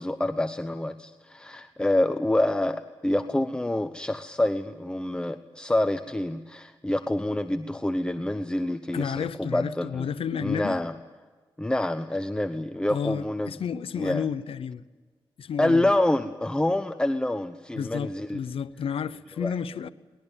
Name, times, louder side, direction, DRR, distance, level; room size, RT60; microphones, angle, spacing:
voice 1, 0.0-10.1 10.4-10.9 11.6-13.6 13.9-14.3 15.6-18.4 19.4-19.6, left 1 dB, 10° left, 0.9 m, -27 dB
voice 2, 8.9-10.8 12.9-14.8 15.4-15.9 17.7-19.9, left 7 dB, 85° left, 0.9 m, -31 dB
22.5 x 20.5 x 9.1 m
wide cardioid pair, 90°, 9 cm